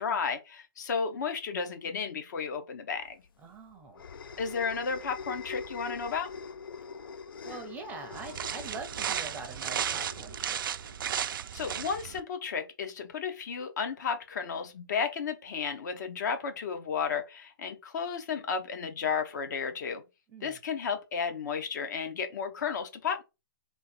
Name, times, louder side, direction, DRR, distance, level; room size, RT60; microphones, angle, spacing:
voice 1, 0.0-3.2 4.4-6.3 11.5-20.0 20.4-23.2, left 6 dB, 55° left, 1.0 m, -33 dB
sound 1, 3.1-11.9, left 5 dB, 75° left, 0.5 m, -44 dB
voice 2, 3.4-4.4 7.4-10.6 20.3-20.6, right 4 dB, 15° right, 0.6 m, -44 dB
sound 2, 8.1-12.2, right 9 dB, 70° right, 0.4 m, -34 dB
3.7 x 2.6 x 4.4 m
hypercardioid pair, 155°, 12 cm